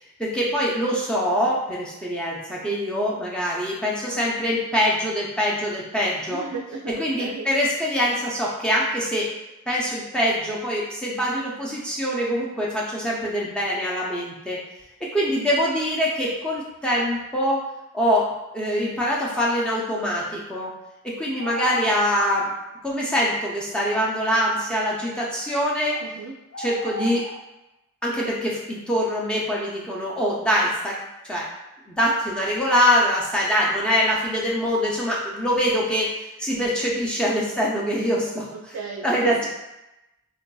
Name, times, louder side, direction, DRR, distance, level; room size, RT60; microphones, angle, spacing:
voice 1, 0.2-6.4 6.9-9.3 9.7-14.6 15.0-17.6 17.9-20.7 21.0-22.5 22.8-26.0 26.6-27.3 28.0-31.0 31.2-31.5 31.9-36.1 36.4-38.8 39.0-39.4, equal, 5° left, -5 dB, 0.5 m, -24 dB
voice 2, 6.3-7.5 26.0-26.3 38.5-39.5, right 5 dB, 70° right, -1 dB, 0.3 m, -32 dB
sound 1, 19.1-19.6 21.4-22.0 23.4-23.5 24.1-25.0 25.9-26.0 26.5-27.4, right 1 dB, 85° left, 0.5 m, -37 dB
3.8 x 2.5 x 2.2 m, 0.95 s
head